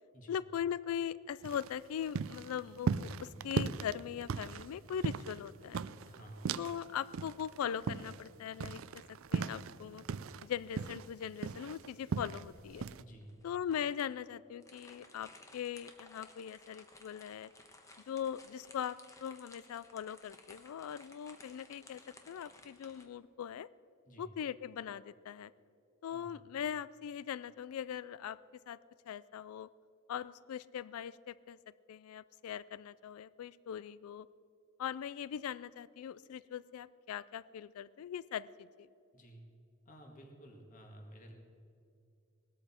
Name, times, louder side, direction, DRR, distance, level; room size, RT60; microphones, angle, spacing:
voice 1, 0.3-5.8 6.6-10.0 10.4-12.8 13.4-17.5 18.1-22.0 22.3-23.7 24.2-25.5 26.0-28.4 28.7-28.8 29.1-29.7 30.1-31.6 31.9-34.3 34.8-38.9, left 8 dB, 90° left, 19 dB, 0.3 m, -40 dB
sound 1, 1.4-6.9 7.1-10.4 10.8-12.5 12.8-13.0, right 5 dB, 70° right, 0.4 m, -37 dB
voice 2, 6.0-6.5 13.0-13.4 24.1-24.3 26.1-26.4 39.1-39.4 39.9-41.3, right 1 dB, 40° left, 2 dB, 2.0 m, -53 dB
sound 2, 12.5-23.1, left 2 dB, 15° left, 1.1 m, -58 dB
18.5 x 13.0 x 4.4 m, 2.5 s
head